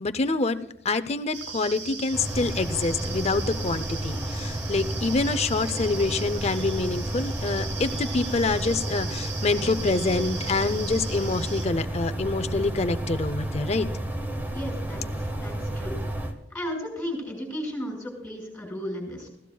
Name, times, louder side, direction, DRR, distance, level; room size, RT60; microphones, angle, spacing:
voice 1, 0.0-13.9, left 3 dB, 35° left, 11 dB, 0.6 m, -26 dB
sound 1, 1.3-11.6, right 5 dB, 70° right, 2.6 m, -38 dB
sound 2, 2.1-16.3, right 1 dB, 10° right, 1.4 m, -31 dB
voice 2, 14.5-16.0 16.5-19.3, equal, 5° left, 0 dB, 5.5 m, -34 dB
19.5 x 16.0 x 2.3 m, 0.82 s
head